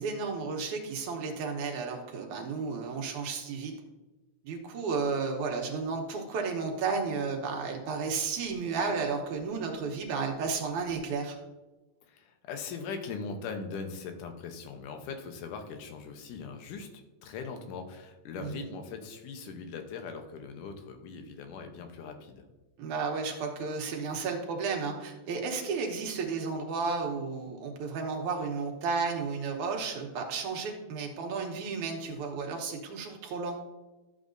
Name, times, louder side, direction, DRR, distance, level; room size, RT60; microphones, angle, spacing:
voice 1, 0.0-3.7 4.4-11.4 18.4-18.6 22.8-33.6, right 4 dB, 75° right, 2 dB, 2.4 m, -33 dB
voice 2, 12.0-22.5, left 5 dB, 90° left, 6 dB, 2.4 m, -40 dB
12.5 x 7.2 x 2.6 m, 1.1 s
omnidirectional pair, 3.5 m